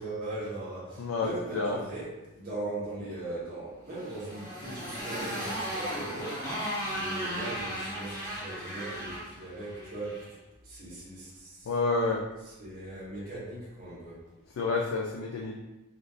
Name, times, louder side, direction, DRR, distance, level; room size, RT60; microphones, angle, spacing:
voice 1, 0.0-6.5 6.9-10.2 10.6-11.7 12.6-14.2, right 2 dB, 45° right, -9 dB, 1.2 m, -39 dB
voice 2, 1.0-1.8 11.7-12.2 14.6-15.5, left 3 dB, 85° left, -1 dB, 0.4 m, -29 dB
Motorcycle, 3.9-10.3, equal, 15° left, 0.8 m, -36 dB
3.6 x 2.5 x 2.6 m, 1.0 s
head